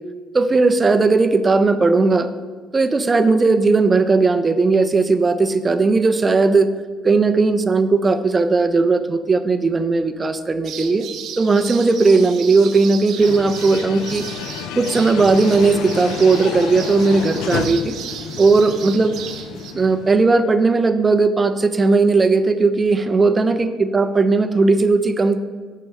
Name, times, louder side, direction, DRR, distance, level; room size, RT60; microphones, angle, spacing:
voice 1, 0.3-2.3 2.7-6.7 7.0-11.1 11.4-14.2 14.8-18.0 18.4-19.1 19.7-25.4, right 3 dB, 20° right, 10 dB, 0.5 m, -17 dB
sound 1, 10.6-19.7, right 8 dB, 60° right, 0.7 m, -35 dB
sound 2, 13.2-20.3, left 7 dB, 80° left, 0.4 m, -30 dB
6.6 x 4.7 x 6.4 m, 1.5 s
cardioid pair, 150°, 0 cm